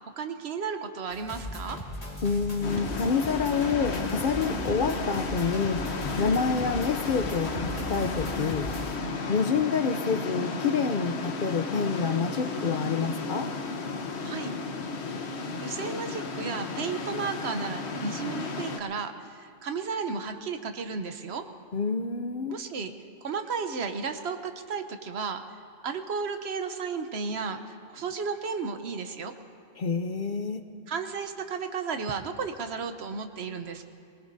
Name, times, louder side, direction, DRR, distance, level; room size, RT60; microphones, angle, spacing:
voice 1, 0.2-1.8 14.2-14.5 15.6-21.4 22.5-22.9 23.2-25.4 25.8-29.3 30.9-33.8, right 5 dB, 70° right, 7 dB, 1.1 m, -33 dB
sound 1, 1.1-9.0, equal, 35° left, 2.0 m, -38 dB
voice 2, 2.2-5.8 6.2-8.7 9.3-13.5 21.7-22.6 29.8-30.6, left 5 dB, 55° left, 8 dB, 0.7 m, -28 dB
sound 2, 2.6-18.8, left 3 dB, 70° left, 1.3 m, -33 dB
22.5 x 18.5 x 2.7 m, 2.6 s
omnidirectional pair, 1.1 m